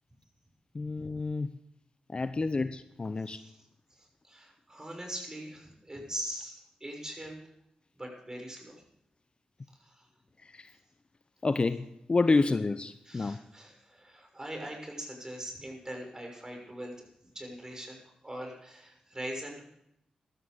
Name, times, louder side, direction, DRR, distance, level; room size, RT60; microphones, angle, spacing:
voice 1, 0.7-1.5 2.1-3.4 10.4-10.7 11.4-13.4, left 3 dB, 40° left, 12 dB, 0.7 m, -29 dB
voice 2, 3.9-7.4 7.9-8.8 9.8-10.1 13.1-17.0 17.2-19.6, right 1 dB, 25° right, 2 dB, 6.3 m, -42 dB
15.0 x 13.0 x 5.3 m, 0.80 s
supercardioid pair, 40°, 3 cm